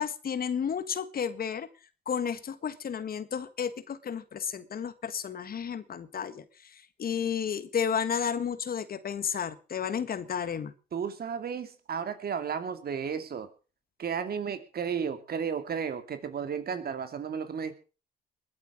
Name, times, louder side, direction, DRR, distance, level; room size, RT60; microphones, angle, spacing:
voice 1, 0.0-1.7 2.1-6.4 7.0-10.7, left 7 dB, 50° left, 13 dB, 1.7 m, -32 dB
voice 2, 10.9-13.5 14.0-17.7, right 7 dB, 50° right, 10 dB, 2.6 m, -33 dB
21.0 x 8.3 x 6.1 m, 0.36 s
supercardioid pair, 60°, 20 cm